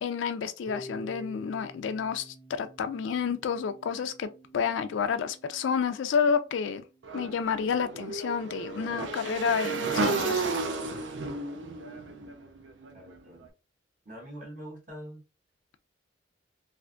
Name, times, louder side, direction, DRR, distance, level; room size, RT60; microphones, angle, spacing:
voice 1, 0.0-6.8 7.1-10.4, left 6 dB, 75° left, 0.3 m, -30 dB
Harp, 0.7-6.7, left 1 dB, 10° right, 0.4 m, -48 dB
Motorcycle / Engine, 7.0-13.2, right 3 dB, 75° right, 0.5 m, -32 dB
voice 2, 12.9-13.5 14.0-15.2, equal, 45° right, 1.2 m, -44 dB
3.3 x 2.5 x 2.4 m
head